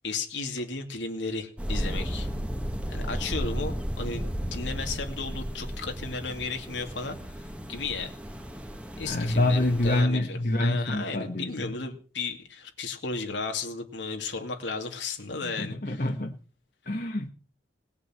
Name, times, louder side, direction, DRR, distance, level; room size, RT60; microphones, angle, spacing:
voice 1, 0.0-2.3 2.9-8.1 9.0-16.1, left 4 dB, 80° left, 2.6 m, -34 dB
sound 1, 1.6-10.0, equal, 5° right, 1.6 m, -34 dB
voice 2, 9.0-11.7 15.3-16.4 16.8-17.3, left 1 dB, 50° left, 1.5 m, -27 dB
19.5 x 8.6 x 7.8 m
head